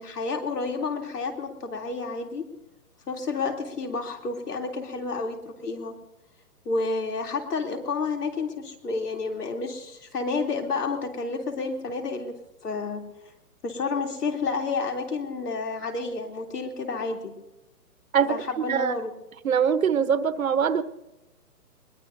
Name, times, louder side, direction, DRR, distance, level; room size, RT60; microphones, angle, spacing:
voice 1, 0.0-2.4 3.1-5.9 6.6-12.3 12.6-13.0 13.6-17.3 18.3-19.1, left 4 dB, 85° left, 3 dB, 3.3 m, -30 dB
voice 2, 19.4-20.8, right 7 dB, 65° right, 12 dB, 1.1 m, -22 dB
22.0 x 21.5 x 2.7 m, 0.91 s
hypercardioid pair, 180°, 46 cm